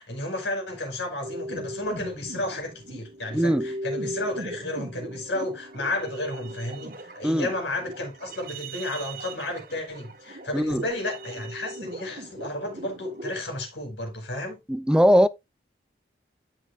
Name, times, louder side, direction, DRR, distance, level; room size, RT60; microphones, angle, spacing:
voice 1, 0.0-14.6, left 1 dB, 85° left, 5.0 m, -32 dB
sound 1, 1.2-13.4, right 1 dB, 50° right, 1.2 m, -38 dB
voice 2, 3.3-3.7 7.2-7.5 10.5-10.8 14.7-15.3, equal, 5° right, 0.3 m, -20 dB
13.5 x 5.9 x 2.4 m
head